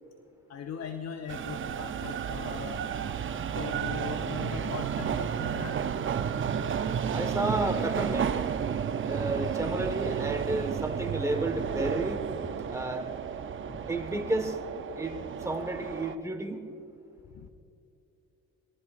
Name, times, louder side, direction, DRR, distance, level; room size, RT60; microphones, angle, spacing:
voice 1, 0.5-3.0 3.5-5.8 13.6-13.8 17.3-17.5, left 7 dB, 60° left, 6 dB, 0.9 m, -40 dB
sound 1, 1.3-16.2, right 8 dB, 40° right, 0.6 m, -32 dB
voice 2, 7.1-8.5 9.0-12.2 12.7-13.1 13.9-14.6 14.9-15.2 15.4-16.6, right 2 dB, 10° right, 4 dB, 1.5 m, -31 dB
22.0 x 15.0 x 2.6 m, 2.8 s
cardioid pair, 90°, 30 cm